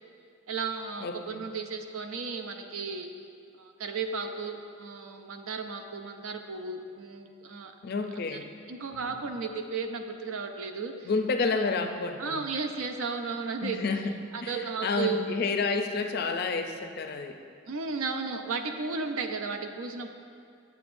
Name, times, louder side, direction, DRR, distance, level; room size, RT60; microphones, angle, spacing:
voice 1, 0.5-3.1 3.6-7.7 8.7-11.1 12.2-13.8 14.3-15.2 17.7-20.1, right 4 dB, 75° right, 6 dB, 0.5 m, -34 dB
voice 2, 1.0-1.4 7.8-8.5 8.9-9.1 11.0-12.4 13.6-17.4, left 4 dB, 45° left, 6 dB, 0.4 m, -30 dB
8.9 x 7.6 x 2.6 m, 2.4 s
head